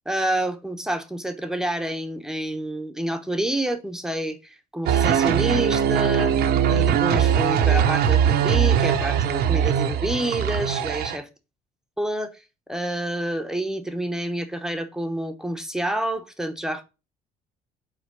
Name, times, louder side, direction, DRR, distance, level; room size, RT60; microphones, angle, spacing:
voice 1, 0.1-11.2 12.0-12.4 12.7-16.8, right 1 dB, 5° right, 1.0 m, -28 dB
sound 1, 4.9-11.2, right 9 dB, 70° right, 0.9 m, -21 dB
5.0 x 4.5 x 6.0 m
cardioid pair, 110°, 17 cm